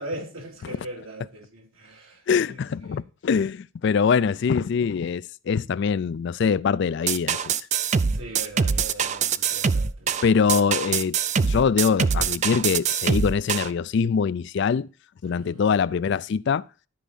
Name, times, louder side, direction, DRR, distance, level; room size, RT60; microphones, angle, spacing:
voice 1, 0.0-2.2 2.5-2.6 2.9-3.0 8.1-10.6 15.3-15.6, right 1 dB, 90° right, 2.9 m, -39 dB
voice 2, 2.3-7.5 10.2-14.9 15.2-16.6, left 6 dB, 60° left, 0.3 m, -23 dB
sound 1, 7.1-13.7, right 6 dB, 35° right, 0.4 m, -23 dB
13.5 x 4.7 x 4.1 m
head